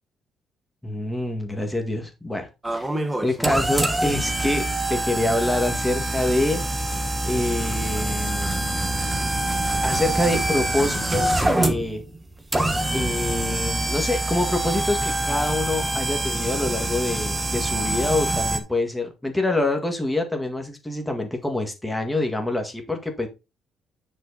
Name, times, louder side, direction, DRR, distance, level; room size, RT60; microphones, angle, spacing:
voice 1, 0.8-2.9 3.2-4.6 4.9-6.6 7.3-8.8 9.8-12.0 12.9-23.3, left 2 dB, 5° left, 3 dB, 1.8 m, -26 dB
sound 1, 2.6-18.6, right 1 dB, 10° right, 1.2 m, -25 dB
9.4 x 5.4 x 4.1 m, 0.27 s
cardioid pair, 180°, 0 cm